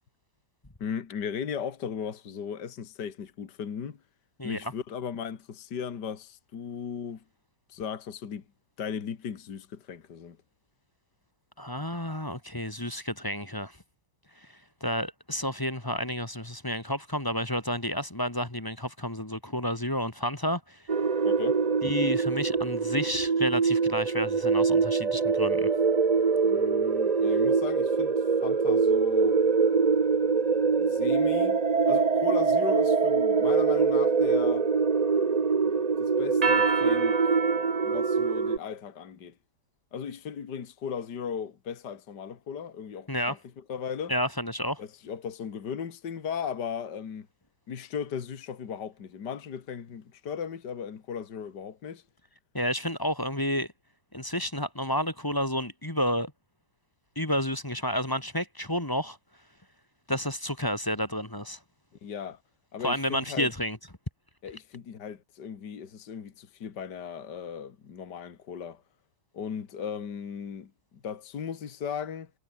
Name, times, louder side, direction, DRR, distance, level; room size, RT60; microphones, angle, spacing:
voice 1, 0.8-4.0 4.4-7.2 7.7-8.4 8.8-10.4 21.2-21.6 26.4-29.4 30.8-31.6 31.9-34.7 36.0-37.2 37.8-39.3 39.9-44.1 44.8-47.3 47.7-52.0 62.0-62.4 62.7-63.5 64.4-68.8 69.3-72.3, left 7 dB, 55° left, 2.4 m, -37 dB
voice 2, 11.6-13.7 14.8-20.8 21.8-25.7 43.1-43.3 44.1-44.8 52.5-53.7 54.1-56.3 57.1-59.2 60.1-61.6 62.8-63.8, equal, 10° left, 1.6 m, -30 dB
sound 1, 20.9-38.6, right 5 dB, 40° right, 0.5 m, -24 dB
omnidirectional pair, 2.2 m